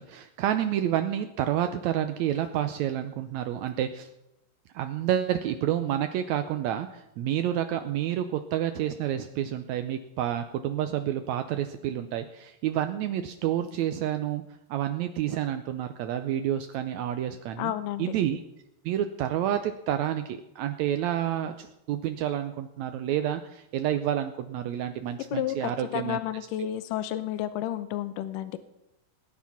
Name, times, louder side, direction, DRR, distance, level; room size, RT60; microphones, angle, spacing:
voice 1, 0.0-4.1 4.7-14.4 14.7-17.7 18.0-18.4 18.9-26.2, right 11 dB, 80° right, 8 dB, 1.7 m, -29 dB
voice 2, 17.6-18.1 25.3-28.6, left 12 dB, 80° left, 12 dB, 2.3 m, -31 dB
20.0 x 9.8 x 5.8 m, 0.86 s
omnidirectional pair, 4.0 m